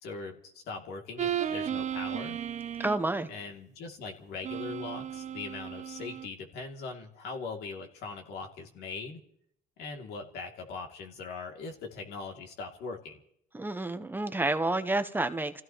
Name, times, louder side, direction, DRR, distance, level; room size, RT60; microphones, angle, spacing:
voice 1, 0.0-2.4 3.3-9.2 9.8-13.2, left 4 dB, 75° left, 2 dB, 2.8 m, -40 dB
sound 1, 1.2-3.1 4.4-6.3, right 9 dB, 45° right, 0.8 m, -34 dB
voice 2, 2.8-3.3 13.5-15.6, right 2 dB, 10° right, 9 dB, 0.9 m, -29 dB
29.0 x 16.0 x 3.1 m, 0.68 s
cardioid pair, 110°, 17 cm